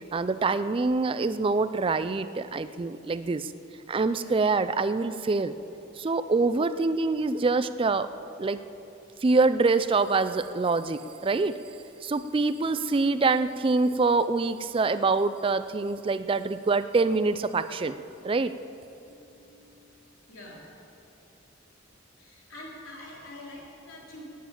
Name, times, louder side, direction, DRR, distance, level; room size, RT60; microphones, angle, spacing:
voice 1, 0.1-3.5 3.9-5.5 6.0-8.1 8.4-8.6 9.2-11.6 12.0-18.0 18.2-18.5, right 3 dB, 25° right, 13 dB, 0.4 m, -25 dB
voice 2, 19.1-19.7 20.3-20.7 22.2-24.2, left 1 dB, 85° left, -4 dB, 3.7 m, -46 dB
13.0 x 9.3 x 8.6 m, 2.8 s
head